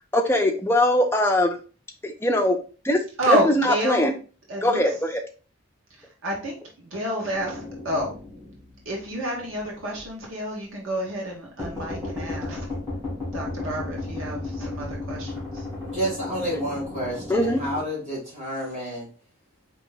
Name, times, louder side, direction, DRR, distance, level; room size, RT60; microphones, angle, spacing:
voice 1, 0.1-1.6 2.0-2.6 2.8-3.0 3.3-4.1 4.6-5.2 17.3-17.6, left 1 dB, 10° left, 3 dB, 0.5 m, -21 dB
voice 2, 3.2-4.1 4.5-5.0 5.9-8.2 8.8-12.7 13.3-15.7, equal, 80° right, -2 dB, 1.3 m, -29 dB
sound 1, 7.3-9.6 10.0-10.1 11.6-17.8, left 2 dB, 15° right, 2.4 m, -34 dB
voice 3, 15.9-19.1, right 1 dB, 35° right, -5 dB, 2.3 m, -30 dB
4.5 x 3.0 x 3.9 m, 0.37 s
head